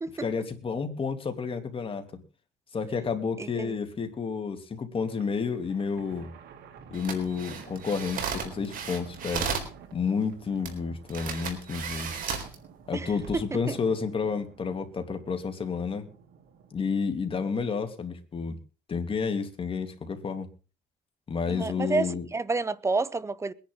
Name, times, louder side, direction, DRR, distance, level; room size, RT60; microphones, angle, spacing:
voice 1, 0.2-2.2 2.7-6.3 6.9-9.5 9.9-12.2 12.9-16.1 16.7-18.6 18.9-20.5 21.3-22.2, left 5 dB, 30° left, 2.9 m, -30 dB
voice 2, 3.4-3.8 12.9-13.8 21.5-23.5, right 3 dB, 15° right, 0.9 m, -30 dB
Thunder, 5.0-16.8, right 6 dB, 75° right, 2.9 m, -50 dB
sound 1, 6.9-9.7 10.6-10.7 11.1-12.5 13.1-13.3, right 6 dB, 55° right, 4.0 m, -34 dB
22.0 x 10.5 x 3.8 m
cardioid pair, 110°, 17 cm